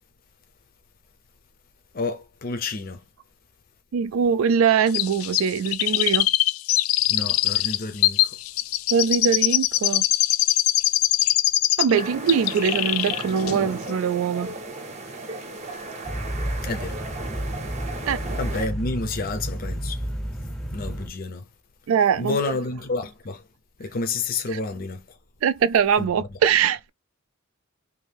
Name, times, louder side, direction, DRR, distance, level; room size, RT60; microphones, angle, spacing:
voice 1, 1.9-3.0 7.1-8.3 16.6-17.0 18.4-20.0 20.7-21.4 22.2-23.4 23.8-25.1 26.0-26.4, left 3 dB, 45° left, 0.6 m, -29 dB
voice 2, 3.9-6.3 8.9-10.0 11.8-14.5 18.1-18.2 21.9-22.4 24.5-24.6 25.4-26.9, right 7 dB, 80° right, 0.3 m, -22 dB
Chirp tweet, 4.9-12.0 12.3-13.2 13.5-13.6, left 15 dB, 90° left, 0.3 m, -22 dB
sound 1, 11.9-18.7, right 2 dB, 35° right, 0.7 m, -35 dB
sound 2, 16.0-21.1, equal, ahead, 0.6 m, -31 dB
2.7 x 2.6 x 3.3 m
head